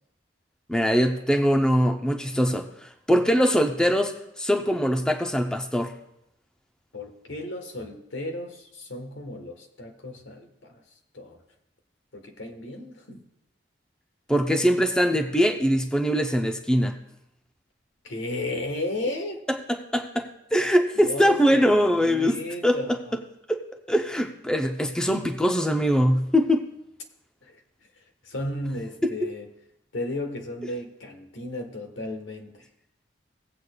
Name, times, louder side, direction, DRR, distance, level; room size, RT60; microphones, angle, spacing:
voice 1, 0.7-2.7 3.1-5.9 14.3-17.0 19.5-22.4 22.6-23.0 23.5-23.6 23.9-26.6, equal, 5° left, 5 dB, 0.5 m, -22 dB
voice 2, 6.9-10.8 11.1-11.4 12.1-13.2 18.0-19.4 20.9-23.2 27.4-27.6 28.2-29.4 29.9-32.6, left 1 dB, 85° left, 5 dB, 1.2 m, -34 dB
17.5 x 8.2 x 2.2 m, 0.82 s
head